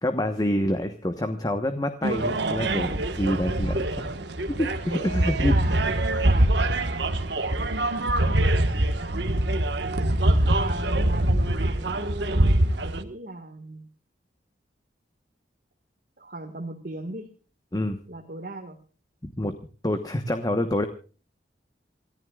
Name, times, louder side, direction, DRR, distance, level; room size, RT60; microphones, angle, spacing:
voice 1, 0.0-4.1 4.6-5.6 17.7-18.0 19.2-19.6 19.8-20.9, left 1 dB, 20° left, 7 dB, 1.1 m, -27 dB
sound 1, 2.0-13.0, right 1 dB, 65° right, 1.4 m, -24 dB
voice 2, 5.4-7.1 10.3-13.9 16.2-17.3 18.1-18.8, right 2 dB, 50° right, 2 dB, 1.8 m, -37 dB
28.5 x 14.5 x 2.4 m, 0.37 s
head